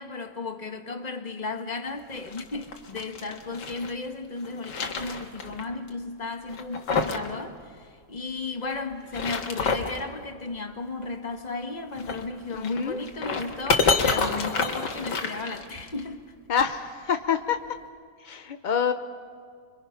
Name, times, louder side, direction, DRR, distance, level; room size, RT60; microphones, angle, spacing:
voice 1, 0.0-16.2, left 3 dB, 30° left, 1.2 m, -34 dB
sound 1, 2.1-3.9 4.4-5.6 5.9-6.0 6.5-7.3 7.6-7.7 8.9-10.0 11.9-16.0, left 4 dB, 90° left, 2.2 m, -28 dB
voice 2, 12.5-13.0 16.5-17.6 18.2-18.9, left 7 dB, 60° left, 0.5 m, -26 dB
26.5 x 23.5 x 5.8 m
omnidirectional pair, 1.8 m